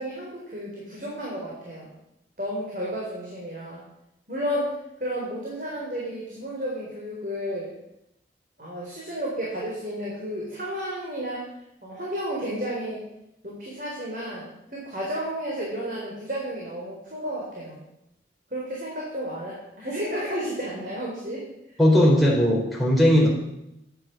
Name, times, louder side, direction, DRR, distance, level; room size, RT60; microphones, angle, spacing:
voice 1, 0.0-1.9 2.4-3.8 4.3-4.7 5.0-7.7 8.6-11.5 11.8-13.0 13.4-17.8 18.5-21.4, equal, 50° right, -4 dB, 4.1 m, -32 dB
voice 2, 21.8-23.3, equal, ahead, -3 dB, 4.4 m, -18 dB
13.5 x 10.5 x 6.2 m, 0.84 s
head